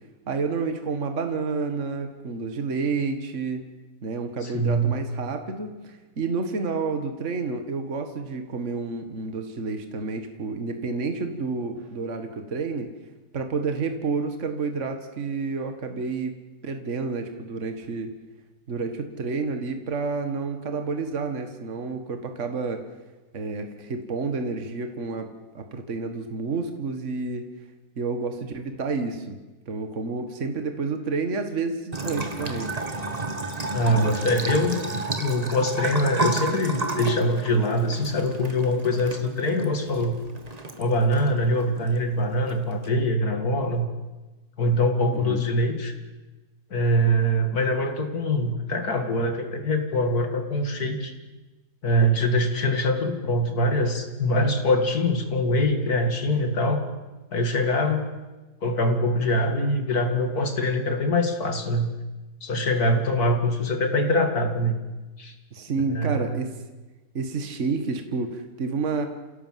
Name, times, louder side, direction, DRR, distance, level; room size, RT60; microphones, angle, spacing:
voice 1, 0.3-3.6 4.0-12.9 13.3-16.4 16.6-18.1 18.7-22.9 23.3-25.3 25.5-27.5 28.0-29.4 29.7-32.7 45.1-45.4 65.5-66.5 67.1-69.1, right 4 dB, 45° right, 6 dB, 2.0 m, -29 dB
voice 2, 4.4-4.9 33.7-34.8 35.2-40.2 40.8-43.8 44.6-45.9 46.7-51.1 51.8-56.8 57.3-58.0 58.6-61.9 62.4-64.8 65.2-65.3 65.9-66.4, equal, 65° left, 6 dB, 2.7 m, -23 dB
Bathtub (filling or washing) / Trickle dribble, 31.9-42.9, right 2 dB, 25° right, 1.7 m, -32 dB
27.5 x 17.0 x 7.6 m, 1.2 s
omnidirectional pair, 1.8 m